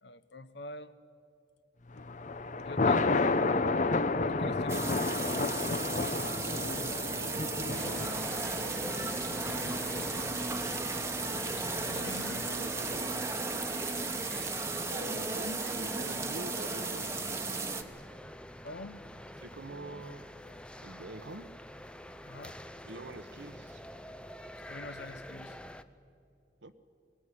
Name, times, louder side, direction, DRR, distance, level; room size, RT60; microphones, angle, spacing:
voice 1, 0.0-1.0 1.9-2.1 2.6-3.5 4.0-5.0 6.6-7.1 11.6-12.5 18.6-19.0 22.2-22.6 24.6-25.6, left 2 dB, 70° left, 13 dB, 1.0 m, -45 dB
Thunder, 1.9-13.3, left 3 dB, 45° left, 0.7 m, -32 dB
sound 1, 4.7-17.8, right 3 dB, 15° right, 1.2 m, -35 dB
voice 2, 7.1-9.0 12.5-13.8 14.9-17.7 19.4-20.3 20.8-21.5 22.9-23.8 26.6-26.7, right 2 dB, 80° right, 11 dB, 1.1 m, -46 dB
sound 2, 7.7-25.8, left 1 dB, 5° left, 0.6 m, -47 dB
22.5 x 19.0 x 9.9 m, 2.6 s
head